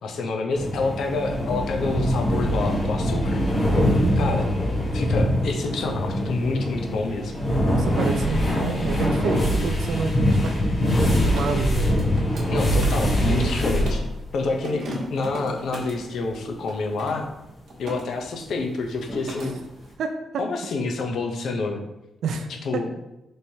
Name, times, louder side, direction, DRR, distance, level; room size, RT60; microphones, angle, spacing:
voice 1, 0.0-3.4 4.1-4.5 4.9-7.3 12.5-14.0 14.3-17.3 17.8-19.6 20.4-21.8 22.6-22.9, left 3 dB, 75° left, 3 dB, 0.6 m, -28 dB
sound 1, 0.5-14.3 14.6-15.1 15.6-15.7 19.1-19.2, equal, 35° left, 1.0 m, -23 dB
voice 2, 7.6-10.5 11.0-12.0 19.4-19.5 20.0-20.5 22.2-22.9, right 5 dB, 80° right, 6 dB, 0.3 m, -29 dB
Mechanisms, 10.0-14.1 14.5-16.0 16.6-18.0 18.3-18.7 18.9-19.5, right 1 dB, 60° right, 1.0 m, -37 dB
4.3 x 3.2 x 2.7 m, 0.92 s
cardioid pair, 130°, 0 cm